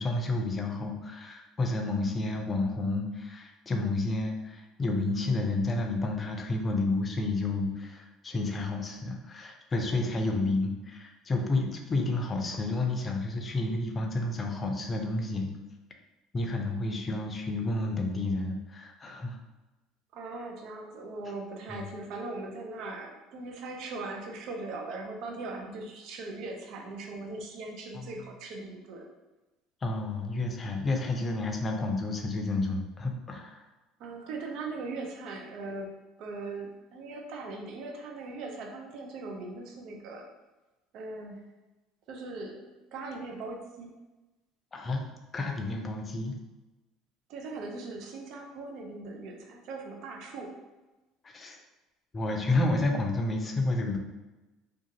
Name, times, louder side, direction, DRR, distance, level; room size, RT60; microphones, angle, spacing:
voice 1, 0.0-15.5 16.3-19.4 21.7-21.8 27.9-28.1 29.8-33.6 44.7-45.0 45.3-46.4 51.2-51.6 52.1-54.0, left 2 dB, 30° left, 3 dB, 0.5 m, -30 dB
voice 2, 10.0-10.5 20.1-29.1 34.0-35.9 36.2-40.3 40.9-41.4 42.1-44.0 47.3-50.6, right 3 dB, 65° right, 2 dB, 0.4 m, -40 dB
2.5 x 2.3 x 2.8 m, 1.1 s
supercardioid pair, 80°, 0 cm